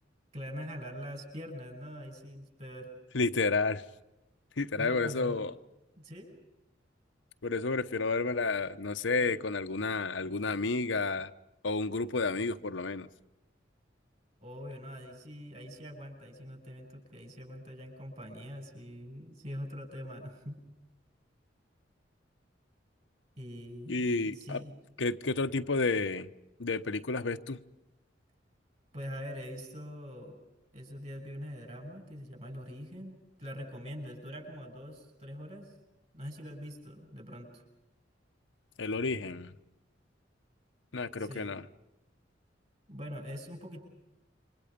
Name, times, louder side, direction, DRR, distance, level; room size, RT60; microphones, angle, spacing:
voice 1, 0.3-2.9 4.8-5.4 6.0-6.3 14.4-20.6 23.4-24.7 28.9-30.4 30.7-35.7 36.1-37.6 41.2-41.5 42.9-43.8, equal, 35° right, 4 dB, 7.4 m, -43 dB
voice 2, 3.1-3.8 4.6-5.5 7.4-11.3 11.6-13.1 23.9-24.6 25.0-26.3 26.6-27.6 38.8-39.5 40.9-41.6, left 3 dB, 75° left, 9 dB, 0.9 m, -31 dB
28.5 x 25.5 x 5.2 m, 0.94 s
head